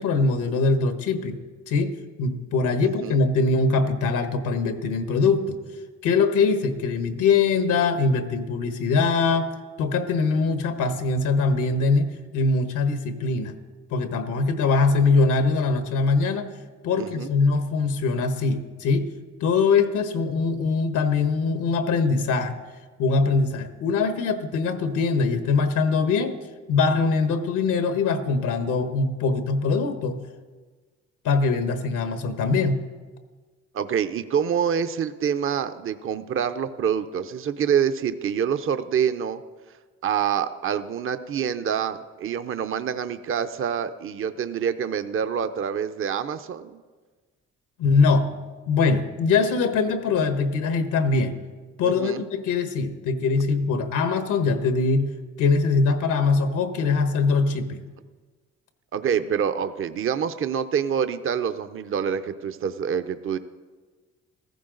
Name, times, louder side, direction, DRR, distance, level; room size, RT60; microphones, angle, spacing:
voice 1, 0.0-1.4 1.7-5.6 6.0-13.5 13.9-16.5 16.8-19.1 19.4-22.6 23.0-26.3 26.7-30.2 31.2-32.8 47.8-48.3 48.7-51.4 51.8-55.1 55.4-57.8, left 4 dB, 90° left, 8 dB, 1.3 m, -22 dB
voice 2, 2.8-3.2 17.0-17.3 33.7-39.4 40.0-46.8 51.8-52.2 58.9-63.4, right 8 dB, 45° right, 12 dB, 0.7 m, -26 dB
14.5 x 14.5 x 3.9 m, 1.4 s
cardioid pair, 90°, 30 cm